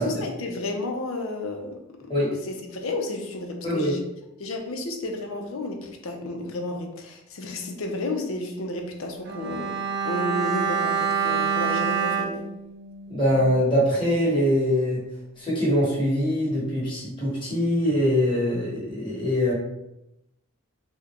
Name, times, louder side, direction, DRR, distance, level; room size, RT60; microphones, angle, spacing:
voice 1, 0.0-1.8 2.5-4.0 4.4-12.4, left 2 dB, 65° left, 3 dB, 0.5 m, -32 dB
Bowed string instrument, 9.2-13.7 14.0-14.1, right 6 dB, 45° right, 0.3 m, -27 dB
voice 2, 13.1-15.0 15.4-19.5, equal, 20° left, -7 dB, 1.1 m, -23 dB
3.7 x 2.1 x 2.9 m, 0.89 s
head